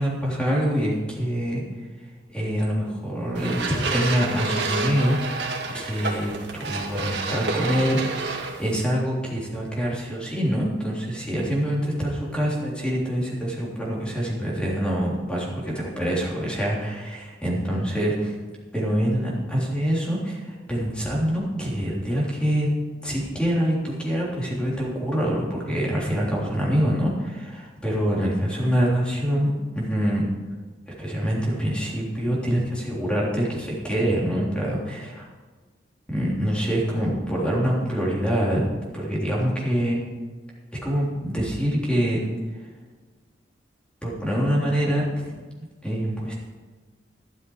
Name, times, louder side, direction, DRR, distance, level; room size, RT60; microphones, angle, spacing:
voice 1, 0.0-1.6 2.3-18.4 18.7-22.7 23.0-30.2 31.0-35.3 36.1-38.6 38.9-40.0 40.8-42.2 42.6-42.7 44.0-45.3 45.8-46.3, equal, 5° left, -4 dB, 3.5 m, -25 dB
sound 1, 3.3-8.8, right 3 dB, 75° right, 1.9 m, -29 dB
12.5 x 12.0 x 4.8 m, 1.4 s
head